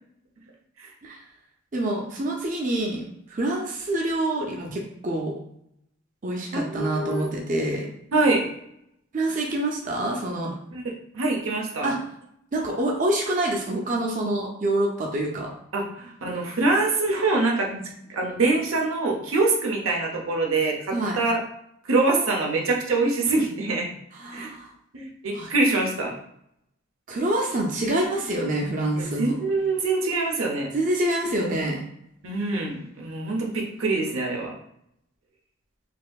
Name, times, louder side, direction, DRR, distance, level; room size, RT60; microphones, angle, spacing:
voice 1, 1.7-5.4 6.2-7.9 9.1-10.5 11.8-12.0 12.5-15.5 17.7-17.8 20.9-21.2 24.2-24.7 25.3-25.5 27.1-29.3 30.7-31.8, right 1 dB, 40° right, 0 dB, 0.5 m, -26 dB
voice 2, 6.5-7.3 8.1-8.5 10.7-11.9 15.7-17.7 18.1-21.4 21.8-23.9 24.3-24.5 24.9-26.2 29.0-30.7 32.2-34.6, right 3 dB, 85° right, 0 dB, 0.7 m, -24 dB
4.1 x 2.6 x 2.3 m, 0.74 s
head